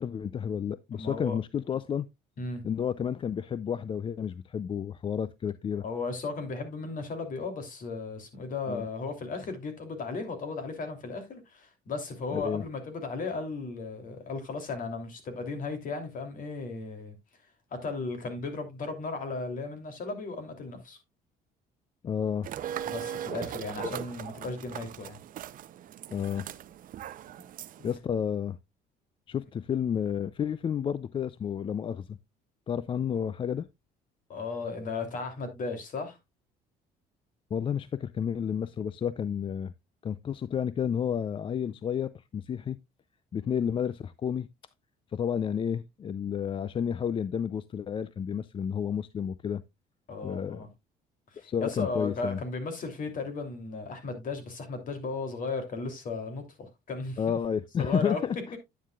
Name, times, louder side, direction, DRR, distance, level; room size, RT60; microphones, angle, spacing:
voice 1, 0.0-2.1 2.6-5.8 8.7-8.8 12.3-12.6 22.0-22.5 23.8-23.9 26.1-26.5 27.8-28.6 29.3-32.2 32.7-33.7 37.5-39.7 40.0-42.8 43.3-44.5 45.1-49.6 50.2-50.6 51.4-52.4 57.2-58.6, left 8 dB, 30° left, 0.4 m, -31 dB
voice 2, 0.9-1.4 2.4-2.6 5.8-17.2 17.7-21.0 22.9-25.2 27.3-27.4 34.3-36.2 50.1-50.7 51.3-57.4 57.8-58.2, left 3 dB, 55° left, 2.9 m, -35 dB
sound 1, 22.4-28.0, right 10 dB, 55° right, 0.6 m, -39 dB
9.9 x 9.3 x 2.3 m
cardioid pair, 110°, 17 cm